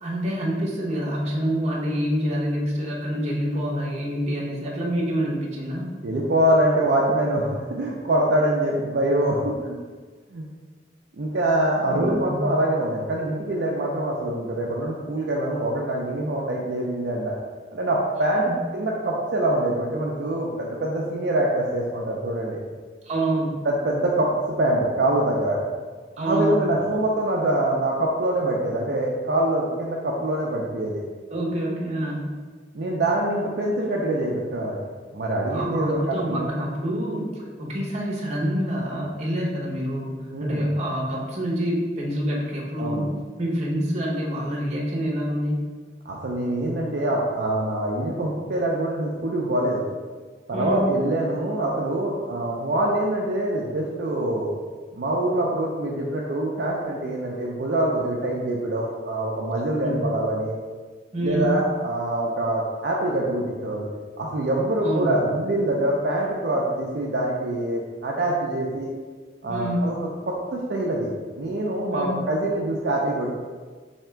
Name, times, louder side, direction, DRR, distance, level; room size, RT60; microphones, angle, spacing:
voice 1, 0.0-5.9 11.8-12.4 18.5-18.6 23.1-23.6 26.2-26.7 31.3-32.3 35.5-40.1 40.4-43.1 43.4-45.6 50.5-50.9 59.7-60.0 61.1-61.6 64.8-65.2 69.5-69.9 71.9-72.2, equal, 40° right, -3 dB, 0.8 m, -27 dB
voice 2, 6.0-9.8 10.3-10.4 11.2-17.3 17.7-22.6 23.6-24.3 24.6-25.6 26.2-31.0 32.7-34.8 35.1-36.5 40.3-40.7 42.8-43.0 46.1-49.8 50.5-54.5 54.9-60.5 61.2-63.9 64.2-68.9 69.4-70.0 70.3-73.3, right 1 dB, 60° right, -3 dB, 0.4 m, -24 dB
3.4 x 2.8 x 4.4 m, 1.5 s
head